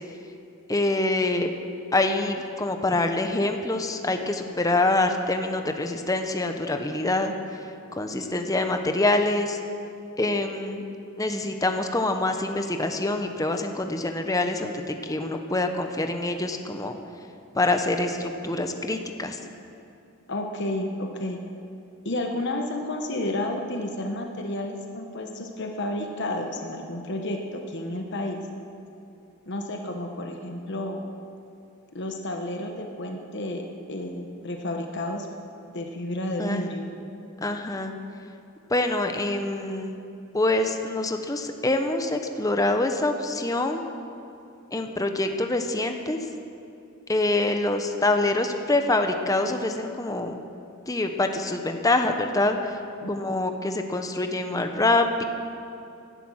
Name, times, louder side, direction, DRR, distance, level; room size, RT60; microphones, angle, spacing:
voice 1, 0.7-1.5 1.9-7.3 8.0-9.6 10.2-10.8 11.2-14.7 15.0-17.0 17.5-19.4 36.4-36.7 37.4-37.9 38.7-39.9 40.3-43.8 44.7-46.2 47.1-50.4 50.9-52.8 53.1-55.2, left 2 dB, 15° left, 5 dB, 0.9 m, -25 dB
voice 2, 20.3-21.4 22.0-28.4 29.5-31.0 31.9-35.3 35.7-36.9 53.0-53.5, left 1 dB, 55° left, 3 dB, 1.1 m, -31 dB
17.0 x 11.5 x 6.4 m, 2.6 s
head